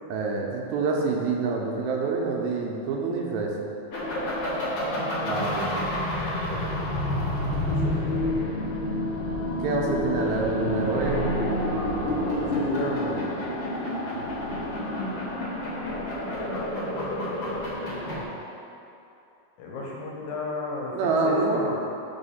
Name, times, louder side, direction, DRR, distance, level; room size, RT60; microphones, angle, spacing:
voice 1, 0.1-3.5 5.3-5.7 9.6-11.2 20.9-21.7, right 4 dB, 80° right, 0 dB, 1.9 m, -26 dB
sound 1, 3.9-18.2, left 1 dB, 60° left, 1.7 m, -28 dB
voice 2, 7.8-8.4 12.4-13.4 14.4-15.4 19.6-21.8, left 2 dB, 85° left, -3 dB, 2.3 m, -35 dB
4.9 x 3.5 x 5.5 m, 2.7 s
omnidirectional pair, 3.3 m